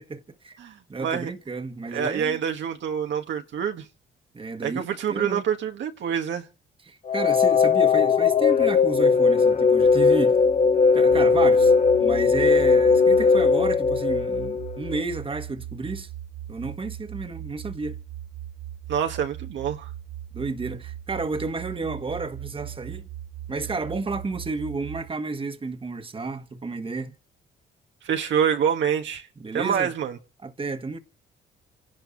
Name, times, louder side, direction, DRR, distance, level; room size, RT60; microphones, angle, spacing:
voice 1, 0.0-0.6 0.9-2.4 4.3-5.4 6.9-10.4 10.9-11.7 12.0-16.1 16.5-17.9 20.3-23.1 23.5-27.1 29.4-29.9 30.4-31.0, right 3 dB, 25° right, 1.6 m, -31 dB
voice 2, 0.6-1.3 1.9-3.9 4.6-6.5 18.9-19.9 28.0-29.3 29.5-30.1, right 8 dB, 70° right, 1.5 m, -26 dB
sound 1, 7.1-15.0, left 5 dB, 35° left, 0.8 m, -19 dB
sound 2, 11.1-25.1, right 12 dB, 85° right, 3.5 m, -39 dB
27.0 x 11.5 x 4.0 m
cardioid pair, 90°, 20 cm